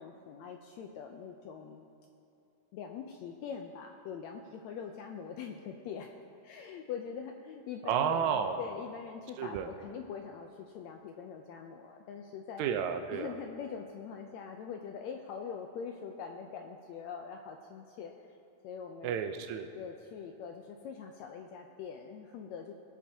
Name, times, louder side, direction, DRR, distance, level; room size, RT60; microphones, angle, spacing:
voice 1, 0.0-1.9 2.7-6.1 6.4-12.6 13.1-18.1 18.6-19.1 19.7-22.7, left 7 dB, 80° left, 3 dB, 1.6 m, -43 dB
voice 2, 7.8-8.6 9.4-9.7 12.6-13.4 19.0-19.7, right 8 dB, 75° right, 6 dB, 1.9 m, -31 dB
20.5 x 8.4 x 2.7 m, 2.8 s
omnidirectional pair, 3.6 m